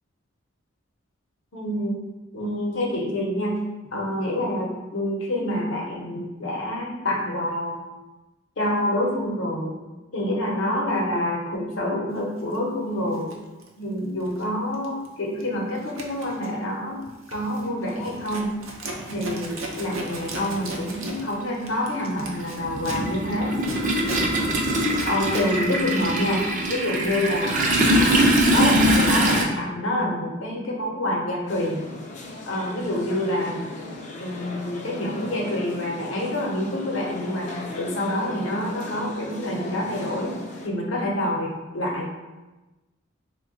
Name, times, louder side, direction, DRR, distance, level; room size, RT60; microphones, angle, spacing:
voice 1, 1.5-2.0 2.3-3.6 3.9-7.8 8.6-9.8 10.1-13.3 13.8-17.0 17.3-18.6 19.1-23.6 25.1-31.8 32.5-33.7 34.2-40.4 40.6-42.1, left 1 dB, 65° left, -1 dB, 0.7 m, -27 dB
Zipper (clothing), 12.4-12.6 13.1-14.5 14.7-15.1 15.4-25.5, right 2 dB, 85° right, 0.6 m, -38 dB
Toilet flush, 18.9-19.0 20.3-20.5 20.8-29.4, right 1 dB, 40° right, 0.5 m, -22 dB
sound 1, 31.5-40.7, left 2 dB, 35° left, 0.4 m, -38 dB
3.1 x 2.2 x 3.7 m, 1.1 s
head